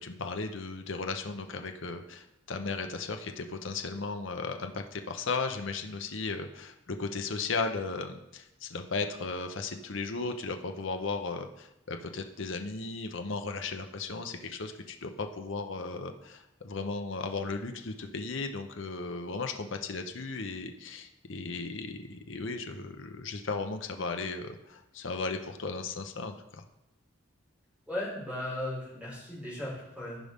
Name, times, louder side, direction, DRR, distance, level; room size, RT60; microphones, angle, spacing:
voice 1, 0.0-26.6, left 4 dB, 65° left, 6 dB, 0.8 m, -36 dB
voice 2, 27.9-30.2, left 1 dB, 5° right, -7 dB, 3.6 m, -36 dB
14.5 x 5.2 x 3.6 m, 0.89 s
head